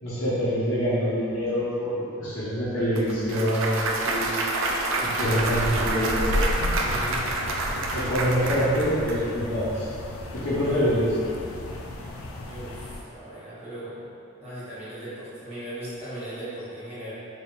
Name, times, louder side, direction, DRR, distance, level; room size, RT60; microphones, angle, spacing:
voice 1, 0.0-4.4 5.0-7.2 7.9-9.9 10.3-11.1, equal, 70° left, -12 dB, 1.0 m, -26 dB
Clapping / Cheering / Applause, 3.0-9.2, right 2 dB, 70° right, 0.4 m, -28 dB
sound 1, 5.2-13.0, left 1 dB, 85° left, 0.4 m, -33 dB
voice 2, 12.4-14.1 14.4-17.1, right 1 dB, 30° right, -12 dB, 1.0 m, -38 dB
4.0 x 3.4 x 2.4 m, 2.7 s
head